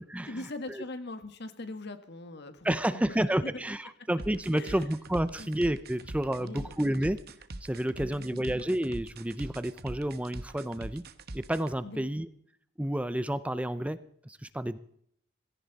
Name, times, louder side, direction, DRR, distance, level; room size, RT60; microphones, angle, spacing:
voice 1, 0.3-3.2 3.4-3.5 4.5-4.9 5.4-5.5 6.3-6.7 8.0-8.6 11.8-12.1, left 2 dB, 60° left, 9 dB, 1.6 m, -41 dB
voice 2, 2.6-7.2 7.6-11.0 11.3-12.3 12.8-14.8, right 1 dB, 5° right, 13 dB, 0.5 m, -30 dB
sound 1, 4.2-11.8, right 2 dB, 55° right, 1.1 m, -42 dB
17.5 x 17.0 x 4.1 m, 0.67 s
head